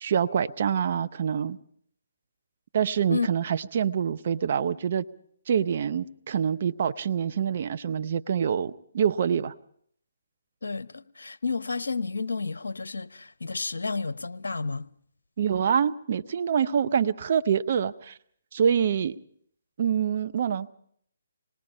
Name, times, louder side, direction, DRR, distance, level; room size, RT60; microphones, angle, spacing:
voice 1, 0.0-1.6 2.7-5.1 5.5-9.5 15.4-18.1 18.5-19.1 19.8-20.7, right 8 dB, 50° right, 0.8 m, -26 dB
voice 2, 10.6-14.9, left 4 dB, 75° left, 0.9 m, -31 dB
26.0 x 19.5 x 5.5 m
figure-of-eight pair, 145°, 0 cm